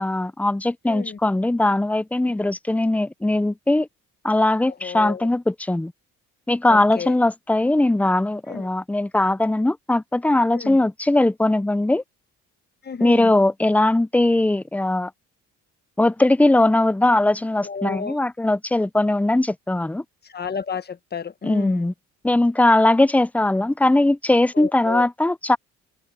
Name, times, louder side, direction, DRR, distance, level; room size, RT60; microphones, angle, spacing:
voice 1, 0.0-3.9 4.2-5.9 6.5-12.0 13.0-15.1 16.0-20.0 21.4-21.9 22.2-25.6, left 2 dB, 5° left, 0.5 m, -20 dB
voice 2, 0.9-1.2 2.2-2.5 4.8-5.3 6.7-7.2 8.5-8.7 10.5-10.8 12.8-13.3 17.6-18.2 20.2-21.9 24.5-25.1, left 6 dB, 35° left, 1.4 m, -32 dB
cardioid pair, 90°, 30 cm